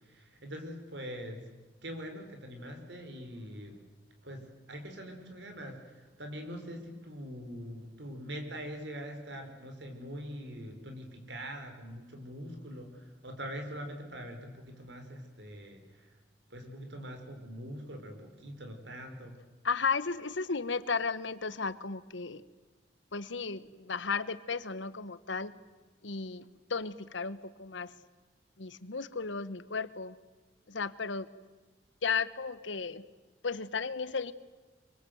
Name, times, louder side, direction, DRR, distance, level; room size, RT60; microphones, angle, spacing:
voice 1, 0.0-1.5 1.8-3.8 4.2-16.1 16.5-19.4, equal, 70° right, 5 dB, 4.7 m, -43 dB
voice 2, 19.6-22.4 23.1-25.5 26.0-27.9 28.6-30.2 30.7-31.3 32.0-33.0 33.4-34.3, left 5 dB, 85° left, 15 dB, 1.1 m, -34 dB
24.5 x 24.0 x 7.9 m, 1.3 s
head